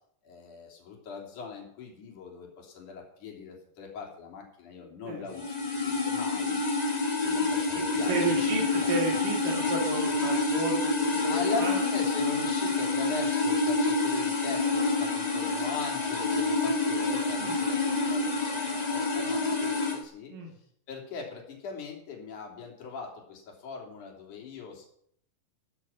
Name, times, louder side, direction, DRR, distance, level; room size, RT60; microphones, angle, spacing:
voice 1, 0.2-5.6 5.8-6.6 7.2-8.9 10.8-10.9 11.3-20.3 20.9-24.8, left 5 dB, 65° left, 0 dB, 4.8 m, -40 dB
sound 1, 5.3-20.0, left 3 dB, 20° left, 1.2 m, -28 dB
voice 2, 7.7-10.9 11.2-11.8 17.4-17.6 20.3-20.5, right 3 dB, 85° right, 0 dB, 4.4 m, -33 dB
13.5 x 13.5 x 5.8 m, 0.67 s
omnidirectional pair, 3.8 m